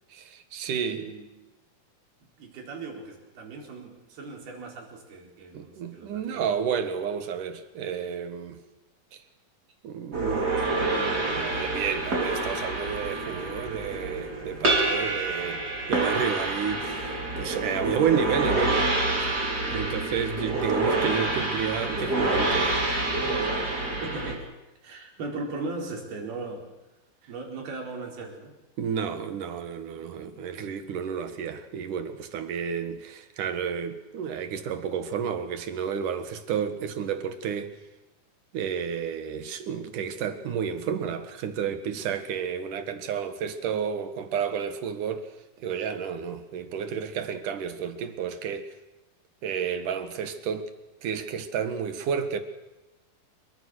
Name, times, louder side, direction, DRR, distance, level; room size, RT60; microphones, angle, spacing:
voice 1, 0.1-1.1 5.5-8.6 9.1-9.2 9.8-15.6 15.9-18.9 19.2-19.4 19.7-22.7 28.8-37.7 38.5-45.3 45.6-48.7 49.4-50.7 51.0-52.4, right 7 dB, 65° right, 3.0 m, -31 dB
voice 2, 0.7-1.3 2.2-6.5 24.0-24.5 24.8-26.7 27.3-28.6, right 3 dB, 85° right, 6.3 m, -38 dB
sound 1, 10.1-24.3, right 2 dB, 25° right, 4.5 m, -27 dB
27.0 x 23.5 x 6.4 m
omnidirectional pair, 4.3 m